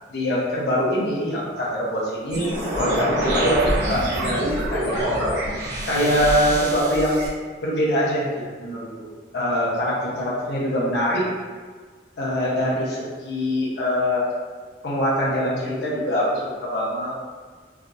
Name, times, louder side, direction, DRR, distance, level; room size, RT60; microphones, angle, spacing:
voice 1, 0.1-2.5 2.7-5.1 5.9-7.3 7.6-8.3 8.6-8.9 9.3-11.2 12.2-14.2 14.8-17.3, equal, 70° left, -6 dB, 0.7 m, -23 dB
sound 1, 2.3-7.3, equal, 75° right, 0.9 m, -26 dB
3.4 x 2.4 x 2.6 m, 1.5 s
head